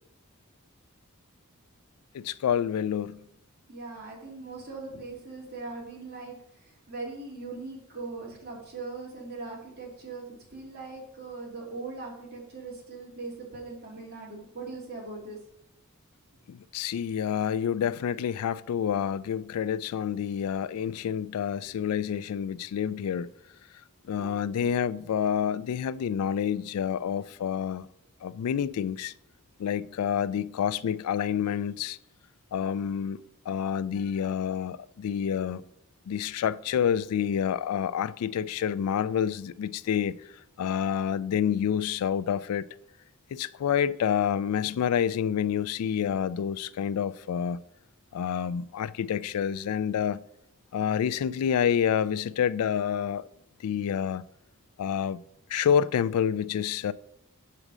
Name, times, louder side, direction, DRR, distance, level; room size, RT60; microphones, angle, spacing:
voice 1, 2.1-3.2 16.5-23.3 24.1-27.9 28.2-29.1 29.6-32.0 32.5-35.6 36.1-40.2 40.6-42.7 43.3-47.6 48.1-50.2 50.7-53.3 53.6-54.2 54.8-55.2 55.5-56.9, left 8 dB, 80° left, 0.3 m, -28 dB
voice 2, 3.7-15.4 24.1-24.3 24.6-24.7, right 3 dB, 45° right, 2.7 m, -40 dB
6.7 x 4.9 x 6.1 m
head